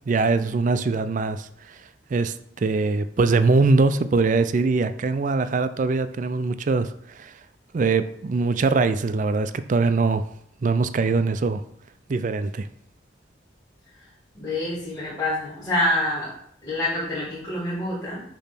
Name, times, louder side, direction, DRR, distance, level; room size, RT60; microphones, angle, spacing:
voice 1, 0.1-1.5 2.1-7.3 7.7-10.2 10.6-11.6 12.1-12.7, right 3 dB, 45° right, 12 dB, 0.4 m, -22 dB
voice 2, 14.3-16.3 16.6-18.2, left 1 dB, 15° left, -11 dB, 2.3 m, -26 dB
6.8 x 3.0 x 5.8 m, 0.69 s
head